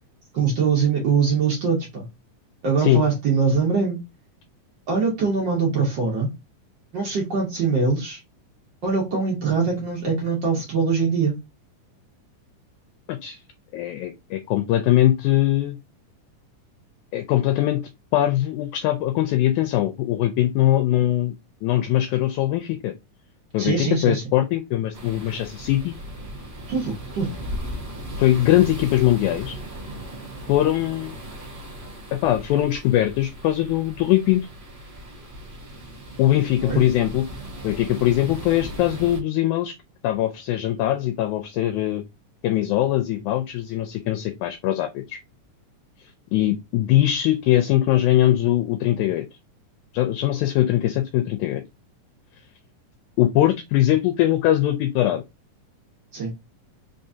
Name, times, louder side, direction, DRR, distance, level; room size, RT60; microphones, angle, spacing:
voice 1, 0.3-2.0 2.6-4.0 4.9-6.3 6.9-8.2 8.8-11.3 23.6-24.2 26.7-27.4 36.6-36.8 56.1-56.3, right 5 dB, 90° right, 0.9 m, -22 dB
voice 2, 13.1-13.4 13.7-15.8 17.1-17.8 18.1-21.3 21.6-22.9 23.5-25.9 28.2-29.6 30.5-31.2 32.1-34.4 36.2-37.3 37.6-39.8 40.0-42.0 42.4-45.2 46.3-49.3 49.9-51.6 53.2-55.2, left 13 dB, 80° left, 1.8 m, -21 dB
sound 1, 24.9-39.2, right 1 dB, 45° right, 0.8 m, -37 dB
4.6 x 3.6 x 2.7 m
omnidirectional pair, 3.8 m